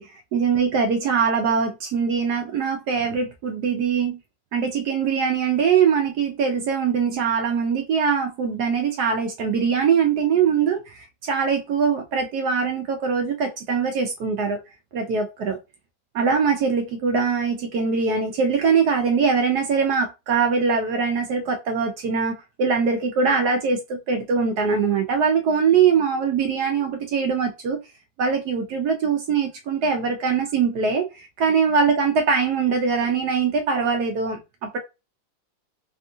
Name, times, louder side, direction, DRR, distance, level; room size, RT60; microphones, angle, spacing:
voice 1, 0.0-4.2 4.5-14.6 14.9-15.6 16.1-27.8 28.2-34.8, right 6 dB, 70° right, 1.0 m, -22 dB
3.5 x 2.3 x 2.6 m
omnidirectional pair, 2.1 m